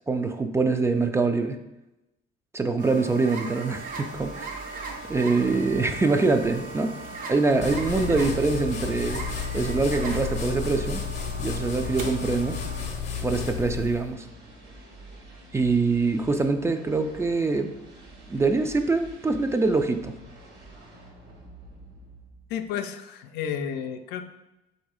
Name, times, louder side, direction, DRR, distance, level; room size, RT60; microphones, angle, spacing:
voice 1, 0.1-1.6 2.5-4.6 5.1-6.9 7.3-9.2 9.5-11.0 11.4-12.6 13.2-14.3 15.5-17.7 18.3-20.1, right 3 dB, 15° right, 7 dB, 0.3 m, -24 dB
sound 1, 2.8-12.8, right 3 dB, 55° right, 0.7 m, -39 dB
sound 2, 3.7-22.7, right 1 dB, 80° right, 1.2 m, -47 dB
sound 3, 7.6-14.1, left 6 dB, 40° left, 0.6 m, -32 dB
voice 2, 22.5-24.2, left 8 dB, 85° left, 8 dB, 0.4 m, -32 dB
4.0 x 2.7 x 4.8 m, 0.96 s
cardioid pair, 110°, 17 cm